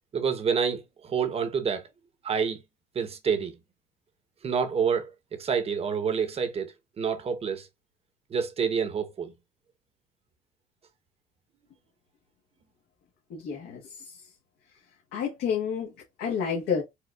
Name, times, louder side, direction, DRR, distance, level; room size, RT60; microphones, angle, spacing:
voice 1, 0.1-1.9 2.2-2.6 2.9-3.6 4.4-7.7 8.3-9.3, right 6 dB, 35° right, 0.8 m, -28 dB
voice 2, 13.3-14.2 15.1-15.9 16.2-16.8, left 7 dB, 80° left, 1.1 m, -30 dB
4.4 x 2.3 x 2.3 m
cardioid pair, 110°, 17 cm